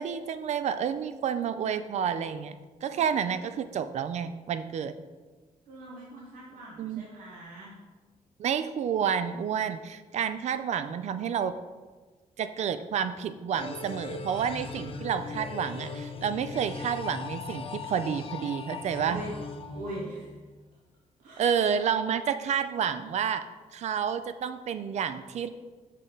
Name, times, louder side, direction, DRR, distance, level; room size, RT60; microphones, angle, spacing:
voice 1, 0.0-2.5 2.8-4.9 6.8-7.0 8.4-11.5 12.4-19.2 21.4-23.5 23.7-25.5, right 7 dB, 60° right, 11 dB, 0.4 m, -30 dB
voice 2, 5.7-7.8 19.0-19.3 19.7-20.3 21.2-21.5, right 1 dB, 80° right, -4 dB, 1.0 m, -41 dB
sound 1, 13.5-20.5, left 4 dB, 45° left, 0.6 m, -39 dB
6.3 x 3.9 x 3.9 m, 1.3 s
cardioid pair, 110°, 13 cm